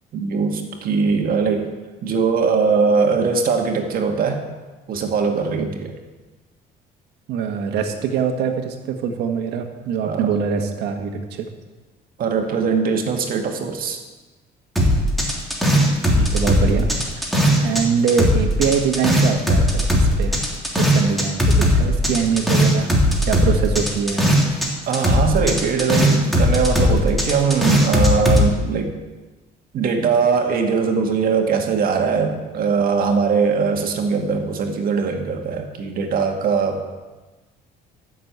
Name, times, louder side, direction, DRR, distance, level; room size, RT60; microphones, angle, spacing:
voice 1, 0.1-1.7 2.0-4.4 4.9-6.0 10.0-10.3 12.2-14.0 24.9-28.9 29.7-36.9, right 5 dB, 60° right, 3 dB, 1.9 m, -21 dB
voice 2, 7.3-11.5 16.1-16.9 17.2-17.3 17.6-20.4 20.8-22.9 23.2-24.2, right 6 dB, 80° right, 5 dB, 1.7 m, -23 dB
sound 1, 14.8-17.8 18.1-24.7 24.9-28.5, equal, ahead, 3.1 m, -17 dB
13.5 x 6.8 x 8.1 m, 1.2 s
cardioid pair, 110°, 17 cm